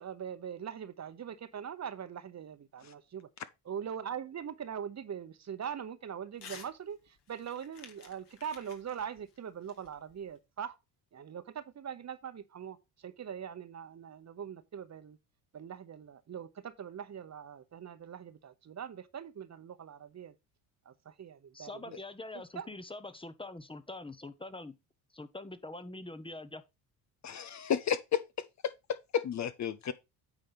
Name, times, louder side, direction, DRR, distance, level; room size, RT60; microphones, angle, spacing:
voice 1, 0.0-3.3 3.6-10.8 11.1-12.8 13.0-15.2 15.5-20.3 20.9-22.0 22.5-22.7, right 8 dB, 35° right, 1.0 m, -42 dB
Crumpling crinkling / Tearing, 6.3-6.7 7.1-10.4, left 6 dB, 60° left, 2.3 m, -52 dB
voice 2, 21.5-24.7 25.1-26.6, left 2 dB, 10° left, 0.9 m, -44 dB
voice 3, 27.2-28.2 28.6-28.7 29.1-29.9, left 8 dB, 40° left, 0.6 m, -31 dB
9.0 x 3.3 x 5.7 m
supercardioid pair, 70°, 45 cm